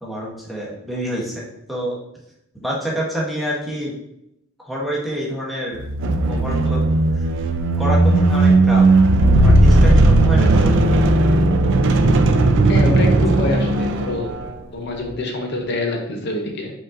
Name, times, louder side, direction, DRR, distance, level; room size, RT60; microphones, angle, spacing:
voice 1, 0.0-1.9 2.5-3.9 4.7-5.8 6.2-6.8 7.1-7.2 7.8-8.9 9.4-10.9, equal, ahead, -5 dB, 1.0 m, -27 dB
sound 1, 5.8-14.6, right 2 dB, 60° right, 0.4 m, -15 dB
voice 2, 12.7-14.3 14.7-16.7, left 2 dB, 55° left, 2 dB, 0.7 m, -25 dB
5.1 x 3.7 x 2.6 m, 0.82 s
head